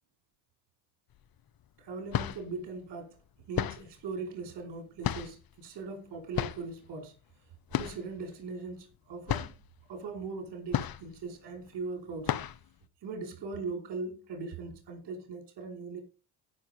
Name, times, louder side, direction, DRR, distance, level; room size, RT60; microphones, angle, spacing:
sound 1, 1.1-1.2 1.9-2.6 3.5-4.0 5.0-5.5 6.3-6.7 7.7-8.1 8.4-8.5 8.9-9.0 9.3-9.7 10.7-11.3 11.7-11.8 12.2-12.7, left 10 dB, 45° left, 1.2 m, -33 dB
voice 1, 1.8-3.2 3.5-7.2 7.8-9.6 9.9-12.4 13.0-16.0, right 4 dB, 55° right, 5.4 m, -40 dB
16.5 x 6.4 x 5.4 m
hypercardioid pair, 70°, 50 cm